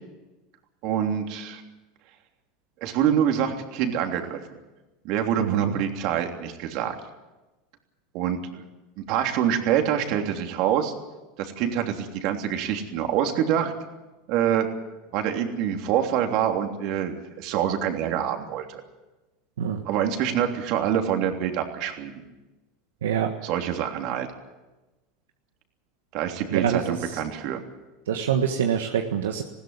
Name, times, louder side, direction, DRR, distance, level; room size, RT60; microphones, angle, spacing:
voice 1, 0.8-1.6 2.8-4.4 5.0-6.9 8.1-8.6 9.1-10.9 11.4-13.7 14.3-14.7 15.1-18.8 19.8-22.2 23.4-24.3 26.1-27.6, right 9 dB, 60° right, 4 dB, 3.2 m, -26 dB
voice 2, 5.4-5.8 19.6-19.8 23.0-23.3 26.5-27.2 28.1-29.4, right 8 dB, 90° right, 4 dB, 1.5 m, -25 dB
20.0 x 16.0 x 9.7 m, 1.1 s
supercardioid pair, 105°, 0 cm